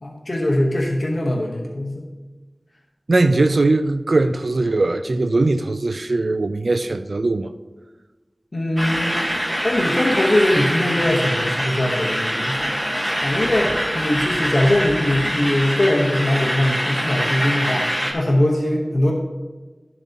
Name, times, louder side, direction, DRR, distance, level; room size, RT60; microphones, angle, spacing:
voice 1, 0.0-2.1 8.5-9.1 9.6-12.8 13.2-17.9 18.1-19.1, left 1 dB, 60° left, 1.0 m, -21 dB
voice 2, 3.1-7.5, right 2 dB, 75° right, 0.3 m, -20 dB
sound 1, 8.8-18.1, equal, 5° right, 1.3 m, -24 dB
11.5 x 6.9 x 2.9 m
wide cardioid pair, 60°, 0 cm